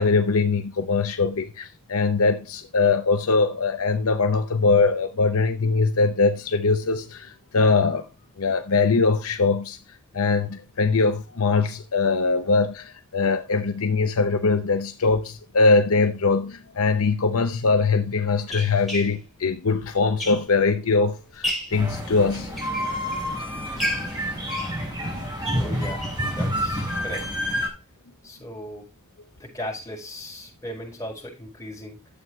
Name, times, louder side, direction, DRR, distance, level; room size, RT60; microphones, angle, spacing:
voice 1, 0.0-8.0 8.4-9.8 10.1-22.5 25.1-25.2 26.9-27.0, left 4 dB, 70° left, 0.8 m, -22 dB
sound 1, 17.0-17.1 17.8-20.8 21.2-21.8 22.4-23.3 23.8-26.3 26.7-26.8 27.1-27.2 27.5-27.6, equal, ahead, 4.5 m, -34 dB
sound 2, 21.7-27.7, equal, 20° right, 3.8 m, -28 dB
voice 2, 25.5-26.0 26.3-27.6 28.2-28.9 29.4-32.0, equal, 15° left, 5.3 m, -37 dB
11.5 x 8.0 x 3.1 m
head